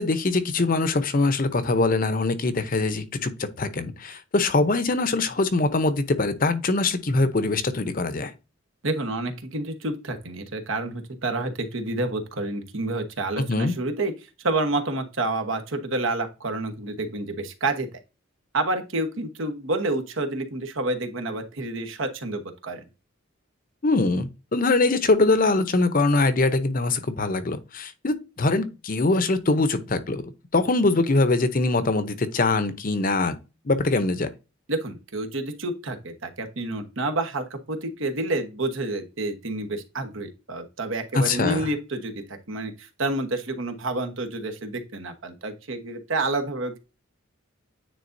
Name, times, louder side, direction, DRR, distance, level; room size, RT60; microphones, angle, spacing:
voice 1, 0.0-8.3 13.4-13.7 23.8-30.2 30.5-33.4 33.7-34.3 41.1-41.7, left 3 dB, 40° left, 0.7 m, -23 dB
voice 2, 8.8-14.1 14.4-17.9 18.5-22.8 34.7-46.8, right 2 dB, 70° right, 1.2 m, -29 dB
9.4 x 3.9 x 2.6 m
head